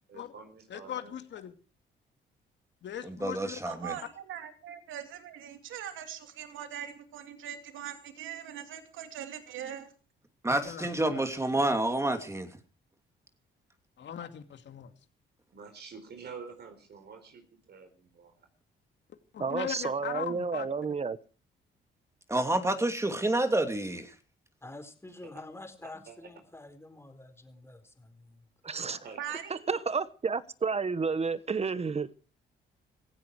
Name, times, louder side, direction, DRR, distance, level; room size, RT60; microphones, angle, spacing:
voice 1, 0.1-1.2 2.9-3.5 15.5-18.5 25.2-25.4 25.8-26.3 28.7-29.4, right 5 dB, 55° right, 4.4 m, -49 dB
voice 2, 0.7-1.5 2.8-3.6 10.6-11.2 11.7-11.8 14.0-14.9 19.3-20.7, left 9 dB, 65° left, 2.5 m, -39 dB
voice 3, 3.0-4.0 10.4-12.5 22.3-24.1, right 1 dB, 15° right, 2.7 m, -29 dB
voice 4, 3.6-9.9 29.2-29.7, right 9 dB, 80° right, 2.7 m, -41 dB
voice 5, 19.4-21.2 28.6-29.0 29.7-32.1, right 5 dB, 30° right, 1.3 m, -31 dB
voice 6, 24.6-28.5, left 2 dB, 10° left, 4.4 m, -48 dB
17.5 x 16.0 x 4.8 m
cardioid pair, 90°, 20 cm